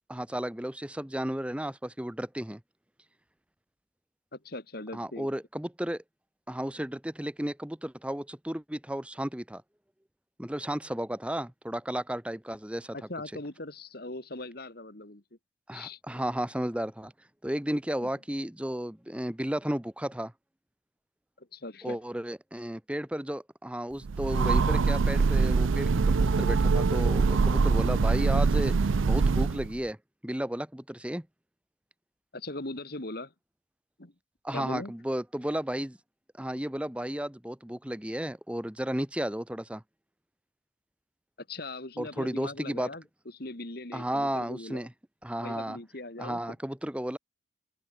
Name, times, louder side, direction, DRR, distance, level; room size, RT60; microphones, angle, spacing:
voice 1, 0.1-2.6 4.9-6.0 6.5-9.6 10.4-13.0 15.7-17.1 17.4-20.3 21.8-30.0 30.2-31.3 34.4-36.0 36.4-39.8 42.0-42.9 43.9-44.9 45.2-45.8 46.2-47.2, right 1 dB, 5° right, 0.8 m, -33 dB
voice 2, 4.3-5.3 12.9-15.4 15.7-16.0 18.0-18.1 21.4-22.0 32.3-33.3 34.0-34.1 34.5-34.9 41.4-44.9 45.4-46.4, left 2 dB, 50° left, 2.2 m, -40 dB
Train, 24.0-29.8, right 4 dB, 85° right, 0.5 m, -24 dB
open air
head